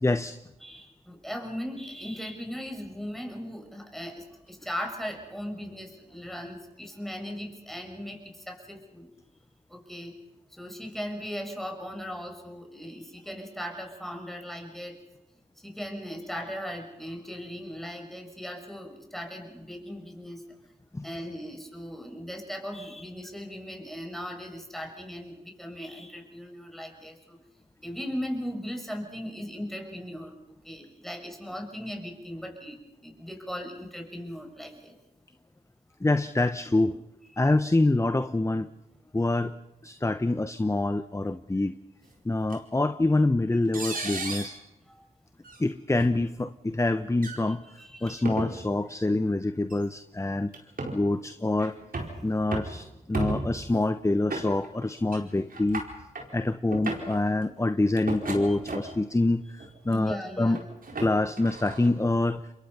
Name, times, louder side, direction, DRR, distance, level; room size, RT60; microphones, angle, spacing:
voice 1, 0.0-0.4 20.9-21.1 36.0-37.0 37.4-38.7 39.1-39.5 39.8-41.7 42.2-44.6 45.6-47.6 48.0-50.5 50.9-51.8 52.2-55.8 56.3-60.6 61.0-62.4, left 2 dB, 15° left, 12 dB, 0.8 m, -26 dB
voice 2, 0.6-9.1 9.7-10.1 10.5-15.0 15.6-20.4 21.0-27.4 27.8-30.3 30.6-34.9 44.9-45.0 47.7-48.5 50.8-51.1 58.5-58.6 58.9-59.0 59.9-60.7, equal, ahead, 3 dB, 6.5 m, -38 dB
sound 1, 42.5-42.6 43.7-44.6 45.4-45.6 46.0-46.1 47.1-47.4 48.1-48.5 49.7-49.8 50.5-51.0 51.6-52.2 52.5-52.8 53.1-53.6 54.3-54.8 55.1-55.2 55.5-56.3 56.7-57.2 58.0-59.0 59.6-60.0 60.6-61.9, right 2 dB, 60° right, 4.7 m, -34 dB
28.5 x 22.5 x 5.6 m, 0.99 s
cardioid pair, 40°, 17 cm